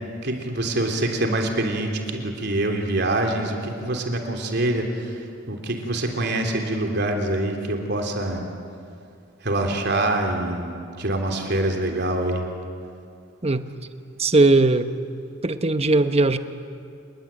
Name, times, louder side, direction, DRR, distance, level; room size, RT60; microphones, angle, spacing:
voice 1, 0.2-8.4 9.4-12.4, right 1 dB, 60° right, 3 dB, 3.4 m, -25 dB
voice 2, 14.2-14.9 15.4-16.4, right 2 dB, 30° right, 9 dB, 1.1 m, -18 dB
28.5 x 21.5 x 8.9 m, 2.4 s
head